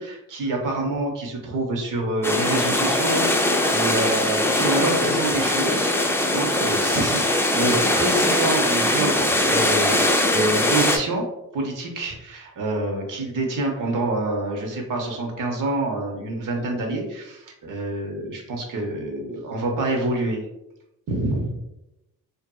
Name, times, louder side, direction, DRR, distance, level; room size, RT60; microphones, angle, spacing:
voice 1, 0.0-20.5 21.1-21.5, right 2 dB, 60° right, 1 dB, 0.8 m, -27 dB
sound 1, 2.2-11.0, left 1 dB, 5° left, 0.3 m, -21 dB
2.6 x 2.5 x 2.3 m, 0.88 s
supercardioid pair, 55°, 36 cm